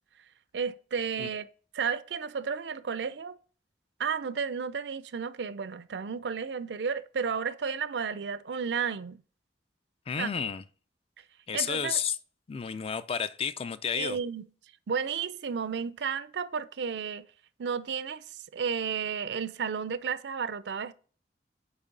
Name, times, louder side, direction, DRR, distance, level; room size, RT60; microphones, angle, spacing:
voice 1, 0.5-1.5 1.7-3.4 4.0-9.2 10.2-10.3 11.5-12.0 14.0-14.5 14.9-17.3 17.6-20.9, right 6 dB, 70° right, 0.4 m, -32 dB
voice 2, 10.1-10.6 11.5-12.2 12.5-14.2, left 7 dB, 35° left, 0.4 m, -31 dB
8.3 x 3.2 x 5.2 m
head